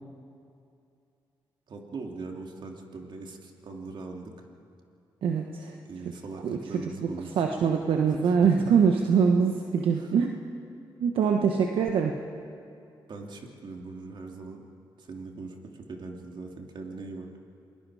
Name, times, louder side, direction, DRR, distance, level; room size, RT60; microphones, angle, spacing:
voice 1, 1.7-4.3 5.9-7.3 8.1-8.4 9.9-10.1 13.1-14.6 15.0-17.3, right 3 dB, 60° right, 1 dB, 2.9 m, -41 dB
voice 2, 5.2-5.7 6.4-6.6 7.0-7.1 7.4-10.3 11.0-12.1, right 6 dB, 80° right, 3 dB, 1.2 m, -23 dB
28.5 x 20.5 x 4.9 m, 2.5 s
cardioid pair, 65°, 9 cm